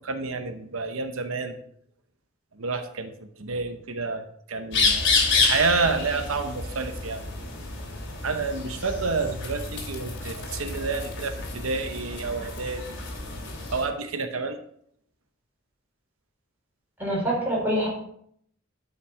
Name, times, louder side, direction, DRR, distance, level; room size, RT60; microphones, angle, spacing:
voice 1, 0.0-1.6 2.6-3.1 3.4-7.2 8.2-13.0 13.7-14.6, right 4 dB, 75° right, 7 dB, 0.9 m, -29 dB
sound 1, 4.7-13.8, left 4 dB, 60° left, 2.7 m, -29 dB
voice 2, 17.0-17.9, equal, 10° right, -5 dB, 4.6 m, -25 dB
11.5 x 5.6 x 4.9 m, 0.67 s
head